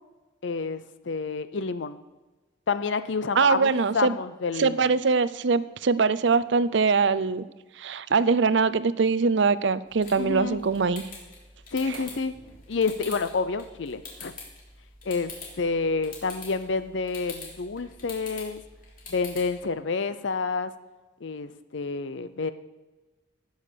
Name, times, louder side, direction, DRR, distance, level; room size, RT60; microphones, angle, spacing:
voice 1, 0.4-2.0 2.7-4.9 10.2-10.6 11.7-12.3 12.7-14.3 15.1-15.3 15.6-18.6 19.1-20.7 21.2-22.5, left 4 dB, 70° left, 12 dB, 0.6 m, -29 dB
voice 2, 3.3-4.2 4.6-7.5 7.8-11.0 11.9-12.0, right 4 dB, 65° right, 16 dB, 0.5 m, -23 dB
sound 1, 9.9-19.6, left 3 dB, 45° left, 3.4 m, -45 dB
17.5 x 6.5 x 6.8 m, 1.2 s
head